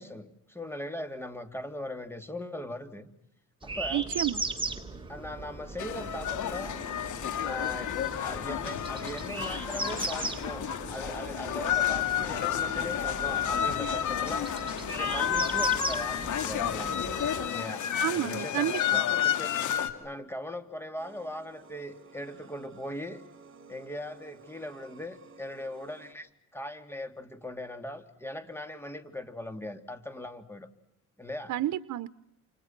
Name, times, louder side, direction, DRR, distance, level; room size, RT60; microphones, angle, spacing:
voice 1, 0.0-3.1 3.6-4.1 5.1-6.7 7.4-14.5 14.9-17.8 18.1-19.5 20.0-23.2 23.7-30.7 31.2-31.5, left 1 dB, 10° left, 8 dB, 3.3 m, -40 dB
sound 1, 3.6-17.5, right 3 dB, 15° right, 3.9 m, -38 dB
voice 2, 3.9-4.4 18.0-19.0 31.5-32.1, right 13 dB, 75° right, 14 dB, 1.0 m, -30 dB
sound 2, 5.8-19.9, left 10 dB, 75° left, 2.8 m, -30 dB
sound 3, 21.0-26.1, right 4 dB, 45° right, 6.8 m, -53 dB
30.0 x 29.0 x 6.1 m, 0.77 s
cardioid pair, 90°, 30 cm